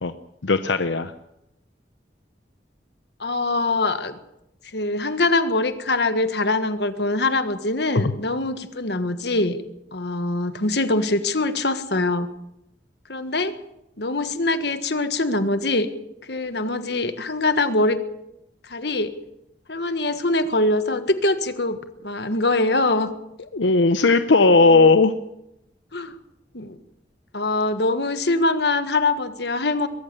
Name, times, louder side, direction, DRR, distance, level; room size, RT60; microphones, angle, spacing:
voice 1, 0.4-1.1 7.9-8.1 23.5-25.1, left 3 dB, 85° left, 10 dB, 0.8 m, -17 dB
voice 2, 3.2-4.2 4.7-9.6 9.9-12.3 13.1-13.5 14.0-15.9 16.3-18.0 18.6-19.1 19.7-21.8 22.0-23.1 24.6-24.9 25.9-26.2 26.5-26.8 27.3-29.9, left 2 dB, 65° left, 10 dB, 1.5 m, -23 dB
22.5 x 14.0 x 8.4 m, 0.85 s
head